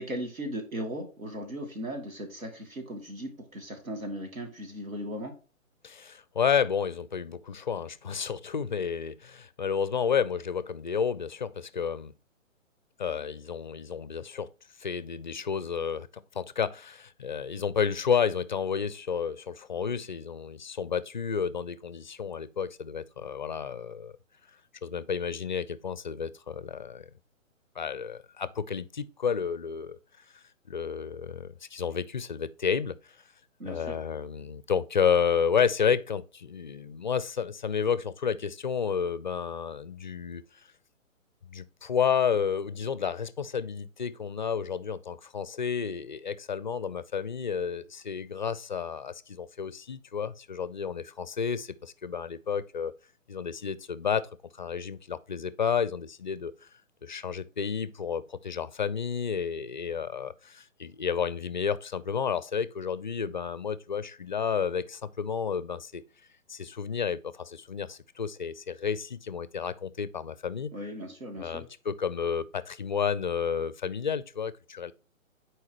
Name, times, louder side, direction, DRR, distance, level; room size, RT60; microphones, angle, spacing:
voice 1, 0.0-5.3 33.6-34.0 70.7-71.7, equal, 80° right, 2.8 m, -37 dB
voice 2, 5.8-12.1 13.0-14.5 14.8-16.1 16.3-24.2 24.8-27.1 27.8-30.0 30.3-33.0 33.6-40.4 41.4-52.9 53.3-54.3 54.5-56.5 57.0-66.0 66.5-70.7 71.4-74.9, left 6 dB, 40° left, 0.4 m, -31 dB
9.6 x 4.6 x 2.9 m
figure-of-eight pair, 140°, 40 cm